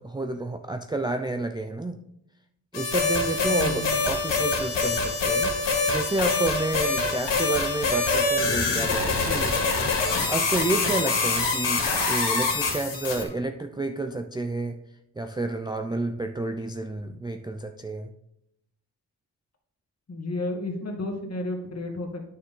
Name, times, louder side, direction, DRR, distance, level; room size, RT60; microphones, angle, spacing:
voice 1, 0.0-2.0 2.7-9.6 10.3-11.8 12.1-14.8 15.2-18.1, right 2 dB, 10° right, 6 dB, 0.4 m, -30 dB
sound 1, 2.7-13.2, left 3 dB, 85° left, 2.2 m, -25 dB
voice 2, 3.4-4.0 20.1-22.3, left 2 dB, 35° left, 1 dB, 2.0 m, -32 dB
9.4 x 6.5 x 3.7 m, 0.79 s
cardioid pair, 95°, 42 cm